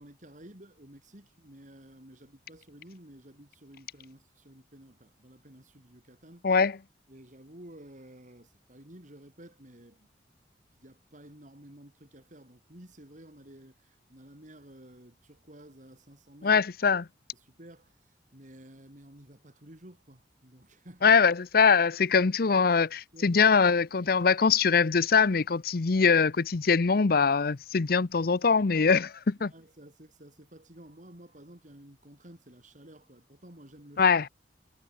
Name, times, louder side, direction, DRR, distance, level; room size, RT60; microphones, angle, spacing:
voice 1, 0.0-6.5 7.1-10.1 10.7-16.6 17.3-21.2 23.1-23.4 29.4-34.2, right 1 dB, 45° right, 4.2 m, -52 dB
voice 2, 16.4-17.0 21.0-29.5 34.0-34.3, left 5 dB, 55° left, 0.7 m, -23 dB
head